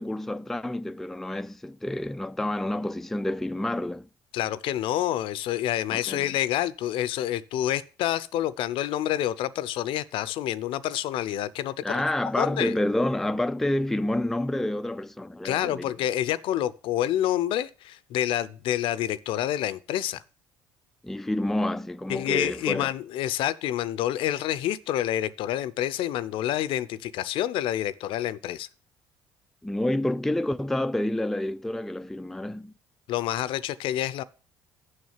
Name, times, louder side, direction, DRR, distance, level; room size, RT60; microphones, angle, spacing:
voice 1, 0.0-4.1 5.9-6.3 11.8-15.9 21.0-22.9 29.6-32.7, left 1 dB, 5° left, 0.3 m, -28 dB
voice 2, 4.3-12.0 12.4-12.8 15.4-20.2 22.1-28.7 33.1-34.2, left 12 dB, 65° left, 0.5 m, -28 dB
6.5 x 6.2 x 7.2 m
hypercardioid pair, 65°, 9 cm